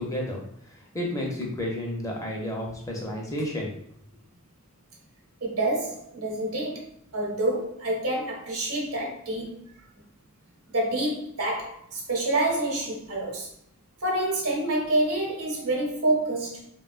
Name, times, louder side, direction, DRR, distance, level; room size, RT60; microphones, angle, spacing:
voice 1, 0.0-3.8, left 1 dB, 15° left, -1 dB, 0.5 m, -32 dB
voice 2, 5.4-6.9 7.1-9.7 10.7-13.5 14.0-16.6, right 1 dB, 75° right, -2 dB, 0.9 m, -27 dB
3.2 x 2.2 x 2.3 m, 0.69 s
head